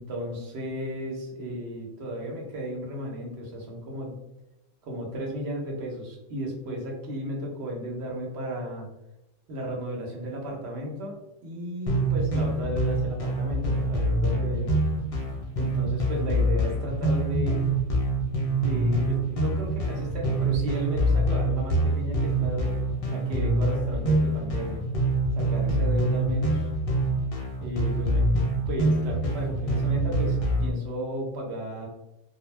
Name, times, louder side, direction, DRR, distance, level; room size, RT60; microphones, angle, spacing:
voice 1, 0.0-4.1 4.8-8.9 9.5-14.7 15.6-17.6 18.6-22.8 23.1-24.8 25.4-26.7 27.6-28.4 28.7-31.9, equal, 60° right, -1 dB, 0.9 m, -34 dB
sound 1, 11.9-30.7, right 1 dB, 60° left, 0.3 m, -25 dB
2.2 x 2.1 x 3.1 m, 0.90 s
omnidirectional pair, 1.3 m